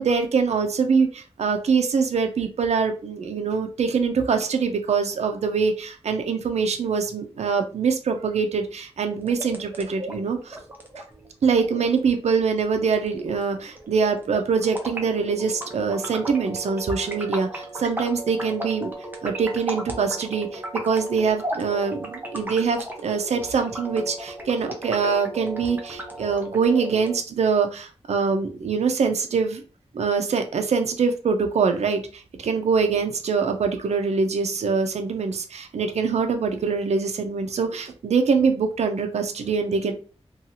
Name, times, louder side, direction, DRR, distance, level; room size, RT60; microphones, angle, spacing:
voice 1, 0.0-10.6 11.0-11.1 11.4-18.9 19.2-29.6 29.9-39.9, right 5 dB, 80° right, 6 dB, 0.4 m, -24 dB
sound 1, 9.2-27.2, right 1 dB, 15° right, 0.7 m, -36 dB
2.7 x 2.3 x 2.7 m, 0.36 s
wide cardioid pair, 100°, 11 cm